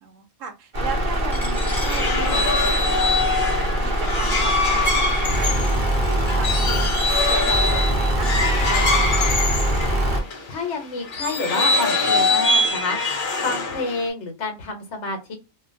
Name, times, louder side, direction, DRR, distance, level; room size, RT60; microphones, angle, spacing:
voice 1, 0.0-9.7, right 5 dB, 85° right, 1.1 m, -36 dB
sound 1, 0.7-10.2, right 1 dB, 45° right, 0.9 m, -23 dB
sound 2, 1.3-10.4 11.1-14.1, left 2 dB, 50° left, 0.7 m, -23 dB
Coin (dropping), 1.3-7.5, equal, ahead, 0.6 m, -43 dB
voice 2, 10.5-13.0 13.4-15.4, left 3 dB, 65° left, 1.1 m, -28 dB
2.7 x 2.3 x 2.5 m
omnidirectional pair, 1.3 m